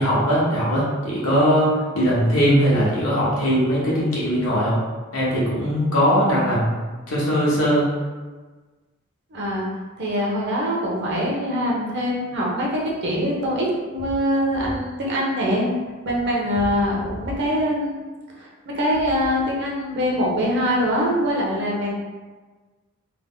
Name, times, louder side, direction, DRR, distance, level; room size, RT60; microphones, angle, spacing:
voice 1, 0.0-4.8 5.1-6.8 7.1-7.9, equal, 85° left, -6 dB, 1.2 m, -20 dB
voice 2, 9.3-9.7 10.0-15.7 16.1-18.0 18.4-21.9, equal, 55° right, -3 dB, 0.8 m, -23 dB
3.4 x 2.1 x 3.7 m, 1.3 s
head